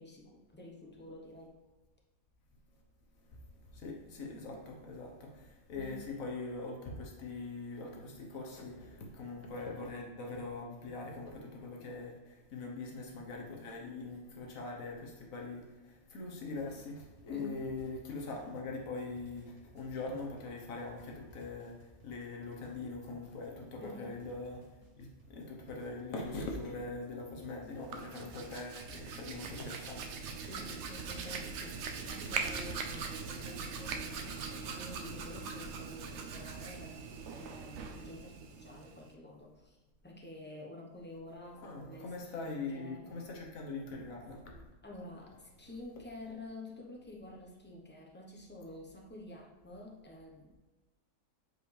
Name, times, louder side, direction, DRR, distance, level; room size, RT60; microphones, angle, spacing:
voice 1, 0.0-1.6 5.7-6.1 17.3-17.6 23.8-24.2 30.4-39.8 40.0-43.3 44.8-50.5, left 1 dB, 10° left, -1 dB, 0.8 m, -49 dB
voice 2, 3.7-30.2 41.6-44.7, left 3 dB, 70° left, 0 dB, 1.5 m, -42 dB
sound 1, 16.6-35.8, right 1 dB, 90° right, 1.7 m, -60 dB
Hands, 27.7-39.1, right 5 dB, 60° right, 0.8 m, -41 dB
7.9 x 4.7 x 3.3 m, 1.2 s
omnidirectional pair, 1.5 m